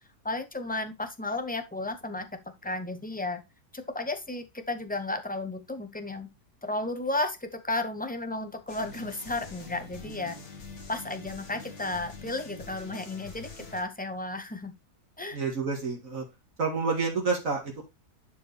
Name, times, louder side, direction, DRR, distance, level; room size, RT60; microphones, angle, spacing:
voice 1, 0.2-2.3 2.6-3.4 3.7-6.3 6.6-10.4 10.9-14.7 15.2-15.4, left 2 dB, 10° left, 7 dB, 0.4 m, -33 dB
sound 1, 8.7-13.8, left 4 dB, 60° left, 2.2 m, -44 dB
voice 2, 15.3-16.2 16.6-17.9, right 4 dB, 55° right, 1 dB, 2.2 m, -29 dB
11.5 x 4.7 x 3.3 m, 0.23 s
omnidirectional pair, 1.7 m